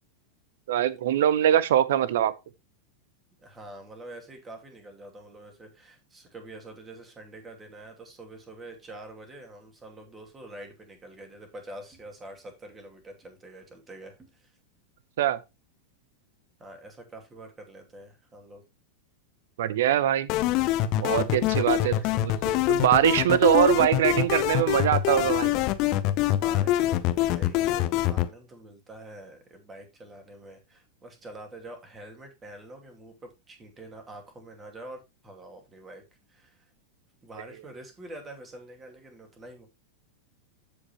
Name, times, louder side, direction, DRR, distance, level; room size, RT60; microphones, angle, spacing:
voice 1, 0.7-2.3 15.2-15.4 19.6-20.3 21.0-21.9 22.2-25.5, right 11 dB, 55° right, 0.7 m, -23 dB
voice 2, 3.4-14.5 16.6-18.6 21.6-22.1 26.2-36.0 36.3-36.7 37.2-39.7, right 1 dB, 20° right, 2.6 m, -46 dB
sound 1, 20.3-28.3, left 13 dB, 40° left, 0.7 m, -25 dB
14.0 x 5.0 x 3.0 m
figure-of-eight pair, 90°, 0 cm